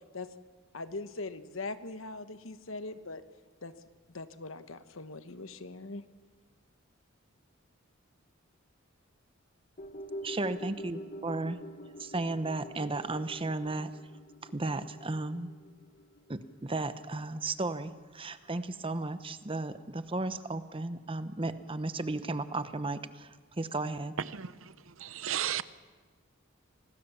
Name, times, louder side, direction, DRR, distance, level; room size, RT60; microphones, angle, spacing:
voice 1, 0.7-3.2 3.6-3.7 4.1-6.0, left 3 dB, 75° left, 11 dB, 1.2 m, -41 dB
sound 1, 9.8-18.2 18.5-18.6, equal, 45° left, 1.2 m, -46 dB
voice 2, 10.2-11.6 12.0-13.9 14.4-15.5 16.3-24.1, right 2 dB, 25° right, 12 dB, 0.9 m, -34 dB
voice 3, 24.2-25.6, right 9 dB, 75° right, 15 dB, 0.7 m, -35 dB
26.0 x 18.5 x 7.2 m, 1.4 s
head